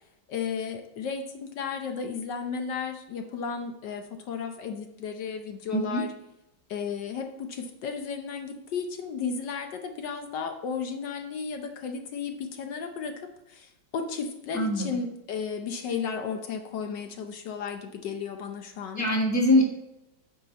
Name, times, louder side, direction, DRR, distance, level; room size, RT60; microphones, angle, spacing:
voice 1, 0.3-6.1 6.7-19.2, left 6 dB, 70° left, 6 dB, 1.3 m, -34 dB
voice 2, 5.7-6.0 14.5-14.9 19.0-19.6, left 1 dB, 10° left, -1 dB, 1.4 m, -23 dB
9.8 x 5.5 x 4.1 m, 0.89 s
omnidirectional pair, 2.2 m